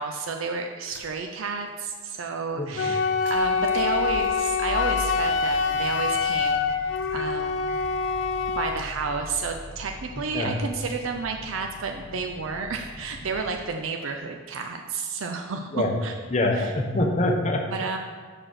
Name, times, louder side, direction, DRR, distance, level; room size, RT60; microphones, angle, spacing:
voice 1, 0.0-3.0 3.3-6.7 7.1-7.7 8.5-16.1 16.5-16.7 17.7-18.0, right 4 dB, 90° right, 3 dB, 0.6 m, -31 dB
sound 1, 0.8-1.3 1.8-1.9 3.0-13.7, equal, 65° right, 1.0 m, -41 dB
Wind instrument woodwind instrument, 2.7-8.8, left 5 dB, 70° left, 0.4 m, -25 dB
voice 2, 16.3-17.6, left 1 dB, 35° left, 1 dB, 0.9 m, -24 dB
5.8 x 4.8 x 6.4 m, 1.5 s
head